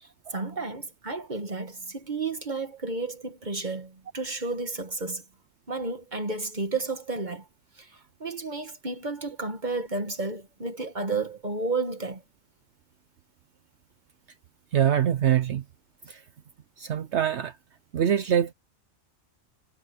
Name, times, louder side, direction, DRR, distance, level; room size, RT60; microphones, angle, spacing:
voice 1, 0.0-5.2 5.7-7.4 7.8-7.9 8.2-12.2, right 3 dB, 35° right, 1.6 m, -32 dB
voice 2, 14.7-15.6 16.1-16.2 16.8-17.5 17.9-18.5, right 9 dB, 65° right, 1.0 m, -24 dB
omnidirectional pair, 1.3 m